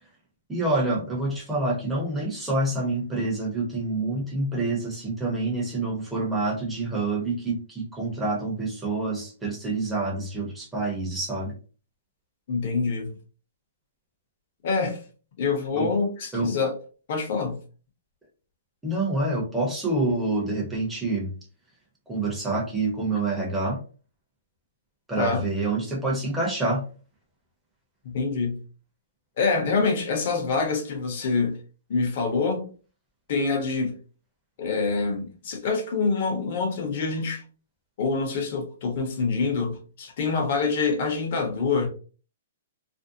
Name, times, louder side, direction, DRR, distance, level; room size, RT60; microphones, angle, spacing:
voice 1, 0.5-11.5 15.7-15.9 16.3-16.5 18.8-21.3 22.1-23.8 25.1-26.8, right 2 dB, 5° right, 0.8 m, -27 dB
voice 2, 12.5-13.1 14.6-15.0 15.4-16.7 17.1-17.6 25.2-25.4 28.0-28.6 29.4-31.6 31.9-32.7 33.3-33.9 34.6-37.4 38.0-41.9, left 4 dB, 50° left, 0.8 m, -26 dB
2.6 x 2.1 x 2.6 m
hypercardioid pair, 160°, 0 cm